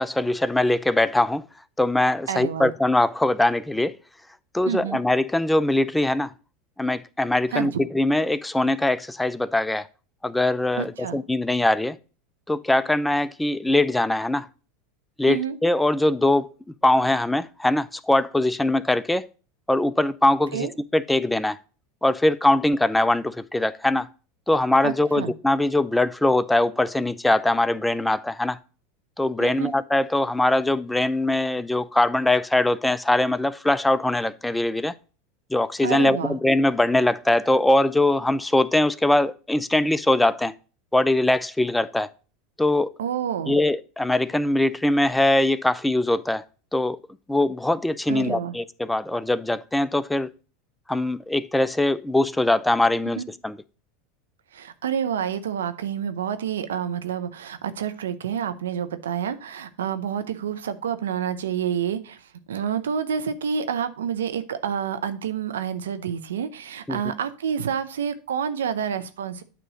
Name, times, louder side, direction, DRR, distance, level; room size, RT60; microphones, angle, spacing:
voice 1, 0.0-1.4 1.8-3.9 4.5-6.3 6.8-9.9 10.2-12.0 12.5-14.5 15.2-16.5 16.8-19.3 19.7-21.6 22.0-24.1 24.5-28.6 29.2-34.9 35.5-40.5 40.9-42.1 42.6-42.9 43.5-46.5 46.7-47.0 47.3-50.3 50.9-53.6 66.9-67.0, left 1 dB, 5° left, 0.4 m, -22 dB
voice 2, 2.3-2.7 4.7-5.0 7.5-7.8 10.8-11.2 15.3-15.6 20.5-20.7 24.8-25.3 29.4-29.7 35.8-36.4 43.0-43.6 48.1-48.5 53.2-53.3 54.5-69.4, right 8 dB, 85° right, 0.7 m, -28 dB
9.0 x 3.0 x 6.1 m
hypercardioid pair, 95°, 0 cm